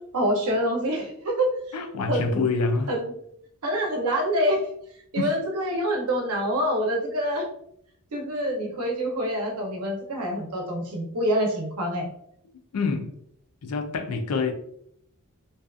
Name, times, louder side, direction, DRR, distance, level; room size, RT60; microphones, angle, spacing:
voice 1, 0.1-1.5 2.1-2.4 2.9-3.1 3.6-4.6 5.1-7.4 8.1-12.1, equal, 75° right, 0.7 m, -26 dB
voice 2, 1.7-2.9 5.2-5.3 12.7-13.2 13.6-14.5, left 4 dB, 80° left, 0.4 m, -26 dB
2.6 x 2.4 x 2.3 m
head